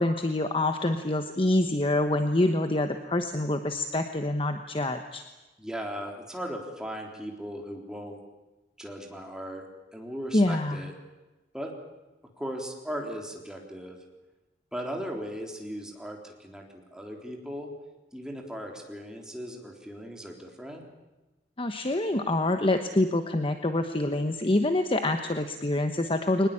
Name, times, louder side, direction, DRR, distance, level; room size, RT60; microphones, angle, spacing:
voice 1, 0.0-5.2 10.3-10.9 21.6-26.5, left 1 dB, 30° left, 7 dB, 1.1 m, -26 dB
voice 2, 5.6-8.2 8.8-9.7 9.9-10.9 11.5-11.7 12.4-14.0 14.7-17.7 18.1-20.8, equal, 5° right, 1 dB, 3.8 m, -37 dB
23.0 x 20.0 x 8.7 m, 1.1 s
head